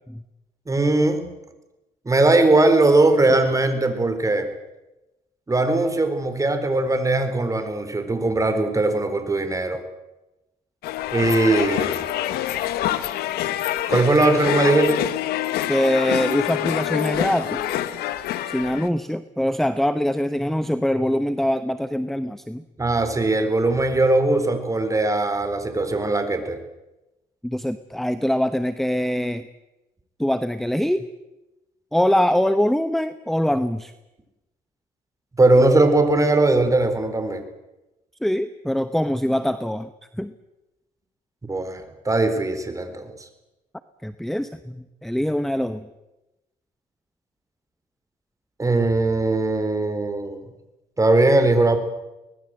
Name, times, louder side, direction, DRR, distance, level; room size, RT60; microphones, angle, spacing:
voice 1, 0.7-1.3 2.1-4.5 5.5-9.8 11.1-12.0 13.9-15.0 22.8-26.6 35.4-37.4 41.4-43.1 48.6-50.4 51.0-51.8, right 2 dB, 20° right, 8 dB, 4.1 m, -20 dB
sound 1, 10.8-18.9, left 12 dB, 85° left, 1.5 m, -26 dB
voice 2, 15.7-17.6 18.5-22.6 27.4-29.5 30.2-31.1 31.9-33.9 38.2-40.3 44.0-45.8, equal, ahead, 12 dB, 1.0 m, -23 dB
24.0 x 20.0 x 7.8 m, 0.98 s
cardioid pair, 90°, 16 cm